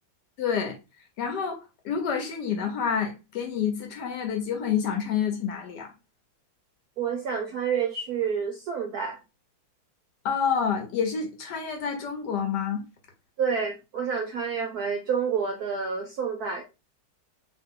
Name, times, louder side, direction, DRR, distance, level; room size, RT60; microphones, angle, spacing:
voice 1, 0.4-0.8 1.2-5.9 10.2-12.8, left 7 dB, 65° left, 1.1 m, -28 dB
voice 2, 7.0-9.2 13.4-16.6, right 6 dB, 75° right, 0.8 m, -29 dB
2.9 x 2.9 x 3.6 m
omnidirectional pair, 2.3 m